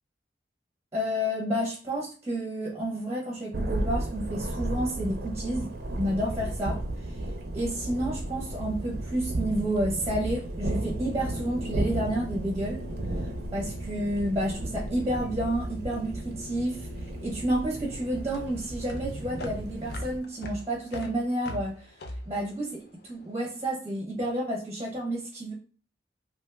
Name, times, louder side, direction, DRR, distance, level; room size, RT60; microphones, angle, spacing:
voice 1, 0.9-7.2 7.5-12.8 13.2-22.0 22.3-25.5, right 1 dB, 15° right, -2 dB, 0.6 m, -30 dB
Thunder, 3.5-20.2, right 1 dB, 60° right, 0.5 m, -34 dB
Brass instrument, 10.6-17.8, left 5 dB, 75° left, 1.3 m, -47 dB
sound 1, 17.0-23.5, left 1 dB, 60° left, 0.4 m, -42 dB
2.7 x 2.2 x 3.2 m, 0.40 s
head